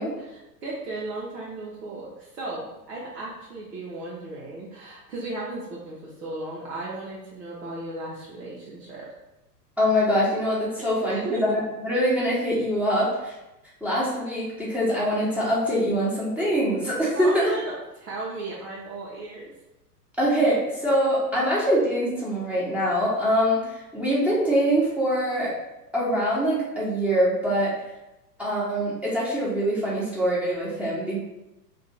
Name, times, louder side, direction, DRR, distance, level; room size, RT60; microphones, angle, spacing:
voice 1, 0.2-9.1 11.1-11.4 17.1-19.5, right 2 dB, 80° right, -6 dB, 0.9 m, -35 dB
voice 2, 9.8-11.5 11.8-13.3 13.8-17.5 20.2-25.5 25.9-27.7 28.4-31.2, equal, 5° right, -8 dB, 0.9 m, -24 dB
2.6 x 2.4 x 4.1 m, 0.96 s
hypercardioid pair, 105°, 48 cm